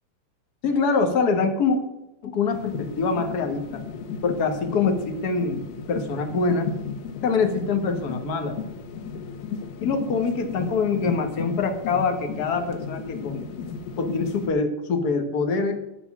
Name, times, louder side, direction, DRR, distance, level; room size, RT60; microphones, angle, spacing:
voice 1, 0.6-1.8 2.2-3.8 4.2-5.6 5.9-6.7 7.2-8.6 9.8-13.5 14.0-15.8, left 4 dB, 50° left, 5 dB, 1.1 m, -24 dB
sound 1, 2.5-14.5, left 5 dB, 85° left, 2.7 m, -35 dB
11.0 x 6.1 x 7.3 m, 0.91 s
omnidirectional pair, 3.8 m